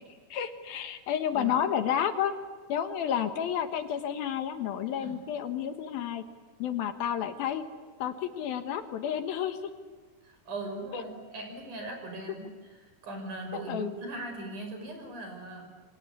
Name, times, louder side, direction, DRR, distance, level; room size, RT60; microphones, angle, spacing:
voice 1, 0.3-2.3 2.7-6.2 6.6-7.6 8.0-9.7 10.9-11.0 13.7-13.9, left 9 dB, 70° left, 8 dB, 3.0 m, -31 dB
voice 2, 10.2-12.8 13.0-15.7, right 2 dB, 50° right, 4 dB, 7.0 m, -39 dB
28.5 x 24.5 x 8.5 m, 1.5 s
omnidirectional pair, 4.6 m